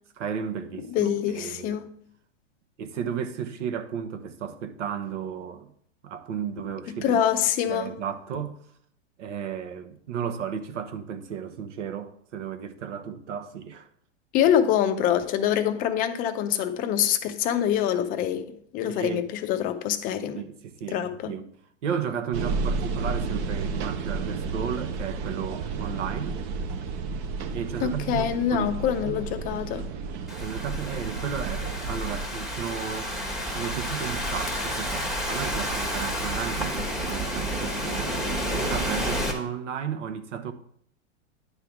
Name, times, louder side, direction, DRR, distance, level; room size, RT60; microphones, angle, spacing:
voice 1, 0.2-1.8 2.8-5.7 6.0-7.2 7.7-8.6 9.2-13.9 18.8-19.3 20.3-21.5 21.8-26.4 27.5-28.7 29.0-29.2 30.4-33.1 33.5-38.2 38.5-40.5, right 7 dB, 75° right, 1.0 m, -34 dB
voice 2, 0.9-1.9 7.0-7.9 14.3-20.4 20.9-21.3 27.8-29.8, left 9 dB, 25° left, 0.5 m, -25 dB
sound 1, 22.3-32.2, right 4 dB, 30° right, 0.5 m, -32 dB
Thunderstorm / Rain, 30.3-39.3, equal, ahead, 1.0 m, -30 dB
9.9 x 3.4 x 5.8 m
hypercardioid pair, 140°, 36 cm